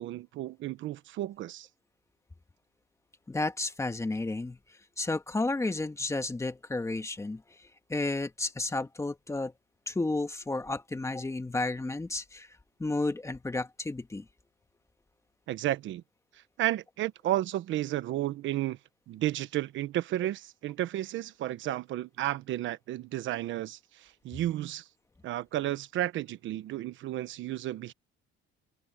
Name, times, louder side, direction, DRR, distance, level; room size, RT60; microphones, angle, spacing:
voice 1, 0.0-1.7 15.5-16.0 16.6-18.8 19.1-24.8 25.2-27.9, right 14 dB, 70° right, 1.2 m, -32 dB
voice 2, 3.3-4.6 5.0-9.5 9.9-12.5 12.8-14.3, left 2 dB, 15° left, 2.0 m, -32 dB
cardioid pair, 105°, 21 cm